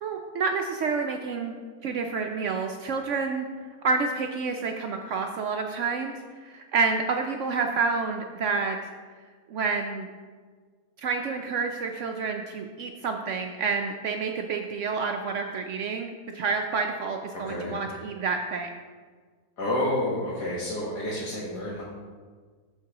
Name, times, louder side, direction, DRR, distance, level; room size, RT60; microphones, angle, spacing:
voice 1, 0.0-1.6 1.8-3.5 3.8-8.9 9.5-10.1 11.0-18.7, right 4 dB, 70° right, 3 dB, 0.7 m, -29 dB
voice 2, 17.3-17.8 19.6-21.8, left 1 dB, 80° left, -7 dB, 1.9 m, -29 dB
13.0 x 4.5 x 2.9 m, 1.5 s
omnidirectional pair, 1.7 m